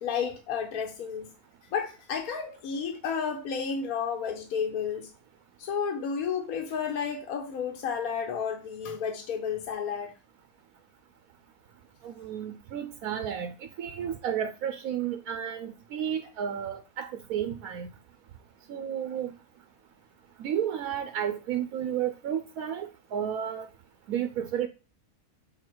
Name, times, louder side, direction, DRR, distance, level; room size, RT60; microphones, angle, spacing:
voice 1, 0.0-1.3 1.7-5.1 5.6-10.1, left 6 dB, 80° left, 1.4 m, -32 dB
voice 2, 12.0-17.9 18.7-19.3 20.4-23.7 24.1-24.7, right 9 dB, 85° right, 1.1 m, -32 dB
7.0 x 3.9 x 4.5 m
omnidirectional pair, 1.5 m